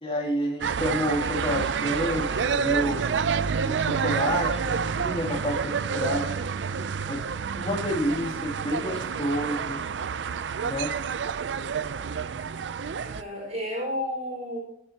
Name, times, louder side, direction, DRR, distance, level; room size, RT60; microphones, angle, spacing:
voice 1, 0.0-3.0 3.7-6.3 7.1-9.8 10.6-10.9, equal, 30° left, -1 dB, 2.8 m, -29 dB
sound 1, 0.6-13.2, right 6 dB, 90° right, 0.5 m, -28 dB
voice 2, 12.9-14.6, left 1 dB, 40° right, -4 dB, 4.8 m, -32 dB
18.0 x 7.6 x 2.9 m, 0.81 s
head